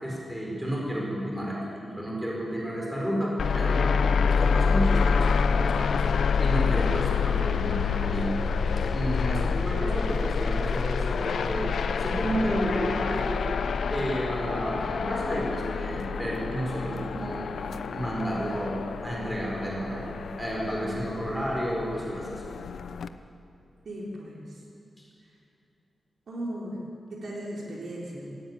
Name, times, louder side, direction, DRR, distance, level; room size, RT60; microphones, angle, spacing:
voice 1, 0.0-6.0 6.4-8.4 8.8-11.7 12.0-13.4 13.9-17.5 17.9-22.5, equal, 5° right, -3 dB, 4.9 m, -31 dB
sound 1, 3.4-23.1, left 5 dB, 75° left, 0.8 m, -27 dB
voice 2, 23.8-24.5 26.3-26.8 27.1-28.3, right 1 dB, 55° right, -3 dB, 4.0 m, -36 dB
18.0 x 16.0 x 9.4 m, 2.7 s
wide cardioid pair, 165°, 0 cm